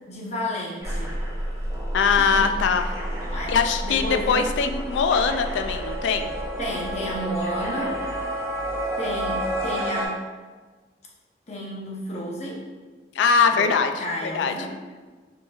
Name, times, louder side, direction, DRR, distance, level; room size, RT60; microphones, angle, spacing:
voice 1, 0.1-1.1 2.2-2.4 3.2-3.6 3.8-4.7 6.6-8.0 9.0-10.2 11.5-12.6 13.5-13.7 14.0-14.7, equal, 40° left, -4 dB, 0.8 m, -31 dB
sound 1, 0.8-10.1, equal, 15° right, 0.7 m, -30 dB
voice 2, 1.9-2.9 3.5-6.3 13.2-13.9 14.2-14.5, left 5 dB, 85° left, 7 dB, 0.3 m, -21 dB
5.2 x 3.0 x 2.3 m, 1.4 s
head